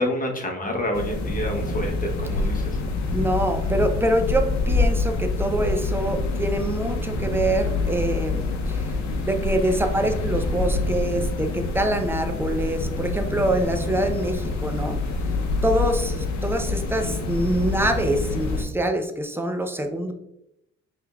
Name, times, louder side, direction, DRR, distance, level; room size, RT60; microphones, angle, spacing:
voice 1, 0.0-2.8, left 1 dB, 25° left, 1 dB, 1.0 m, -28 dB
sound 1, 0.9-18.7, left 3 dB, 65° left, 0.8 m, -26 dB
voice 2, 3.1-8.9 9.2-15.0 15.6-20.1, right 1 dB, 10° right, 5 dB, 0.6 m, -25 dB
5.1 x 3.4 x 2.3 m, 0.82 s
cardioid pair, 90°, 30 cm